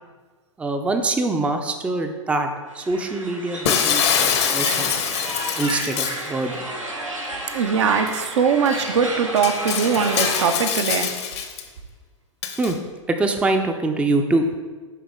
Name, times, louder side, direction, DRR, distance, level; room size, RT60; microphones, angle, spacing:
voice 1, 0.6-2.5 2.7-4.9 5.6-6.6 12.6-12.8 13.1-14.5, right 2 dB, 5° right, 6 dB, 0.4 m, -24 dB
sound 1, 2.7-10.5, right 1 dB, 90° right, 1.2 m, -31 dB
Shatter, 3.6-6.3 8.1-8.2 8.6-8.8 9.4-11.6 12.4-12.7, left 8 dB, 60° left, 0.8 m, -24 dB
voice 2, 7.5-11.1, right 6 dB, 60° right, 7 dB, 0.6 m, -21 dB
10.0 x 3.6 x 3.5 m, 1.4 s
figure-of-eight pair, 100°, 16 cm